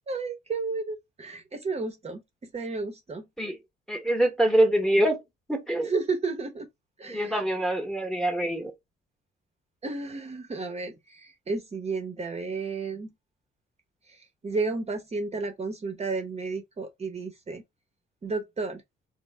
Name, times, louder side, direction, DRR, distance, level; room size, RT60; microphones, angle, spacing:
voice 1, 0.1-3.3 5.8-6.7 7.0-7.4 9.8-13.1 14.0-17.6 18.2-18.8, right 3 dB, 30° right, 0.7 m, -32 dB
voice 2, 3.9-5.2 5.5-5.9 7.1-8.7, right 1 dB, ahead, 0.9 m, -24 dB
3.1 x 2.0 x 3.2 m
cardioid pair, 90°, 20 cm